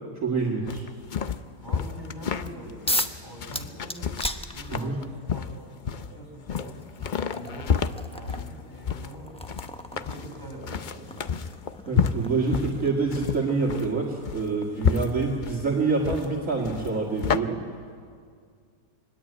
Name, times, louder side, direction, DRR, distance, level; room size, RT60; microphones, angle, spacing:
voice 1, 0.2-0.8 4.7-5.0 11.9-17.6, right 4 dB, 50° right, -3 dB, 2.4 m, -26 dB
sound 1, 0.7-17.4, left 6 dB, 80° left, 0.4 m, -30 dB
voice 2, 1.6-6.8 7.3-7.8 8.1-9.3 9.6-11.3, right 1 dB, 15° right, 0 dB, 6.2 m, -44 dB
sound 2, 2.9-3.2 3.5-5.1 6.2-6.3 6.8-13.5, left 1 dB, 5° left, 0.5 m, -35 dB
23.0 x 20.5 x 8.6 m, 2.1 s
omnidirectional pair, 1.8 m